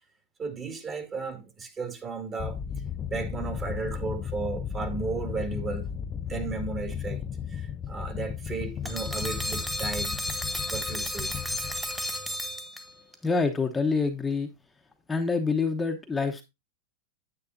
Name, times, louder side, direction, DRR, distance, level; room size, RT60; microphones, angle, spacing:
voice 1, 0.4-2.6 3.1-5.9 6.3-7.2 7.5-10.2 10.7-11.4, right 4 dB, 25° right, 2.0 m, -34 dB
sound 1, 2.4-12.5, left 8 dB, 30° left, 0.4 m, -35 dB
sound 2, 8.8-13.1, left 1 dB, 5° right, 1.5 m, -33 dB
voice 2, 13.2-14.5 15.1-16.4, left 4 dB, 10° left, 0.9 m, -26 dB
9.6 x 8.0 x 2.6 m
hypercardioid pair, 110°, 0 cm